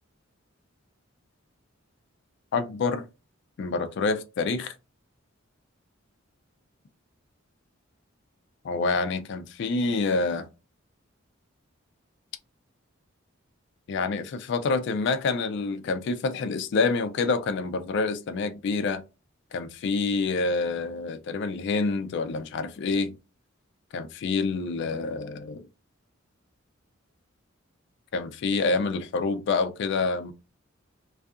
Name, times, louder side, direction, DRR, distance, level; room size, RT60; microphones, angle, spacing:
voice 1, 2.5-3.0 3.6-4.7 8.6-10.5 13.9-19.0 19.5-23.2 23.9-25.6 28.1-30.3, left 4 dB, 55° left, 0.3 m, -27 dB
2.6 x 2.3 x 2.4 m
head